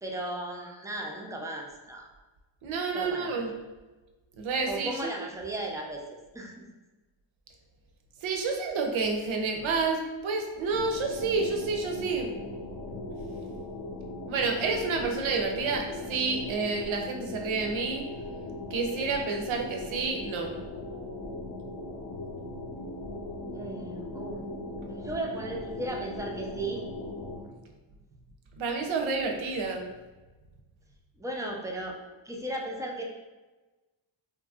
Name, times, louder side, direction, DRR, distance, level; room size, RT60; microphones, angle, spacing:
voice 1, 0.0-2.1 2.9-3.5 4.7-6.0 6.3-6.7 23.5-24.4 24.9-26.8 31.2-32.0 32.2-33.0, right 1 dB, 10° right, 0 dB, 0.4 m, -36 dB
voice 2, 2.6-3.6 4.4-5.1 8.2-12.3 14.3-18.0 18.7-20.6 28.6-29.9, right 4 dB, 80° right, 2 dB, 0.6 m, -29 dB
sound 1, 10.7-27.4, left 2 dB, 45° left, 0.6 m, -39 dB
2.8 x 2.6 x 2.3 m, 1.2 s
cardioid pair, 75°, 47 cm